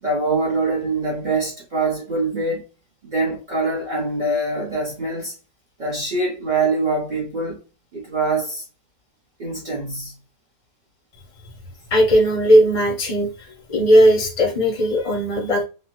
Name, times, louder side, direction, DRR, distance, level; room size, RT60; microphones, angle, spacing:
voice 1, 0.0-2.6 3.0-5.3 5.8-7.6 7.9-8.6 9.4-10.1, right 3 dB, 60° right, 0.4 m, -24 dB
voice 2, 11.9-13.3 13.7-15.6, equal, 45° left, 0.4 m, -17 dB
3.0 x 2.1 x 2.9 m
omnidirectional pair, 1.9 m